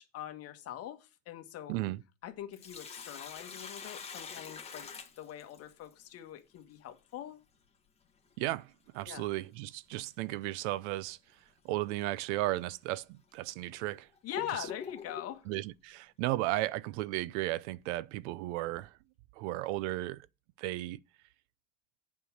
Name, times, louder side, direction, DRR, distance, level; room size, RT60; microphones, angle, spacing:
voice 1, 0.0-1.7 2.2-7.4 9.0-9.3 14.2-15.5, left 11 dB, 40° left, 1.6 m, -43 dB
voice 2, 1.7-2.0 8.4-11.2 11.6-14.1 15.5-19.0 19.4-20.3 20.6-21.0, right 17 dB, 75° right, 0.6 m, -35 dB
Sink (filling or washing), 2.3-5.9 8.3-8.4 10.3-10.5 11.0-11.1 11.9-12.0 12.7-12.8 13.5-15.4, left 6 dB, 15° left, 1.6 m, -45 dB
8.4 x 4.7 x 7.2 m
cardioid pair, 145°, 36 cm